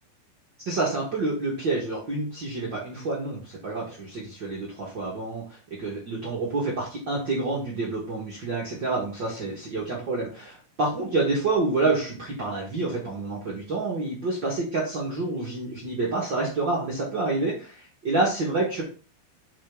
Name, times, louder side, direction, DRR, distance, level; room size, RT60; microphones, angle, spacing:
voice 1, 0.6-18.8, right 3 dB, 60° right, -4 dB, 1.2 m, -28 dB
7.4 x 4.8 x 3.6 m, 0.39 s
omnidirectional pair, 4.3 m